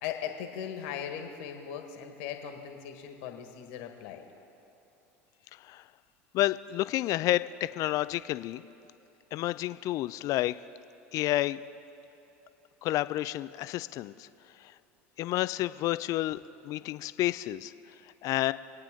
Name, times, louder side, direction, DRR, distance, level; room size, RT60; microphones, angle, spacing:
voice 1, 0.0-4.2, left 8 dB, 70° left, 4 dB, 1.7 m, -39 dB
voice 2, 6.3-8.6 9.3-10.6 11.1-11.6 12.8-14.3 15.2-16.4 16.6-17.7 18.2-18.5, left 15 dB, 55° left, 14 dB, 0.5 m, -30 dB
26.0 x 8.9 x 3.8 m, 3.0 s
hypercardioid pair, 80°, 7 cm